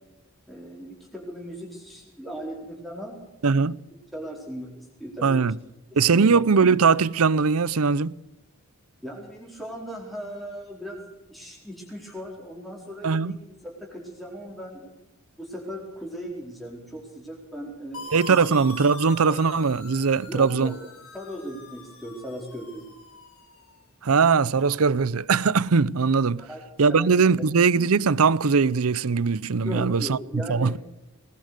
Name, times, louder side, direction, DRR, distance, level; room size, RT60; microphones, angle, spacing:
voice 1, 0.5-3.2 4.1-5.5 6.1-6.4 9.0-14.9 15.4-18.5 19.2-19.4 20.3-20.8 21.1-22.8 26.4-26.6 26.9-27.4 29.6-30.8, equal, ahead, 4.4 m, -38 dB
voice 2, 3.4-3.8 5.2-5.5 6.0-8.1 13.0-13.4 18.1-20.7 24.0-26.4 26.8-30.7, right 5 dB, 75° right, 0.7 m, -21 dB
sound 1, 17.9-23.7, left 3 dB, 70° left, 5.2 m, -43 dB
21.0 x 19.5 x 6.7 m
head